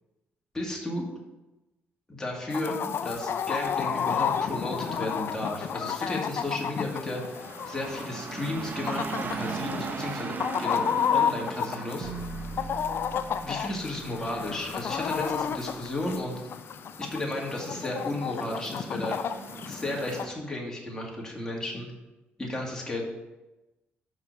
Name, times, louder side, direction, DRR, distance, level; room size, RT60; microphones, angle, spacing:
voice 1, 0.5-1.1 2.1-10.8 11.1-12.1 13.4-16.4 17.0-19.2 19.7-21.9 22.4-23.0, left 1 dB, 15° left, -2 dB, 2.3 m, -33 dB
Chicken rooster, 2.5-20.3, left 7 dB, 60° left, 0.4 m, -32 dB
sound 1, 3.0-20.3, right 4 dB, 45° right, 0.7 m, -41 dB
sound 2, 12.0-16.2, right 4 dB, 85° right, 0.8 m, -42 dB
5.7 x 5.0 x 6.2 m, 1.0 s
cardioid pair, 75°, 4 cm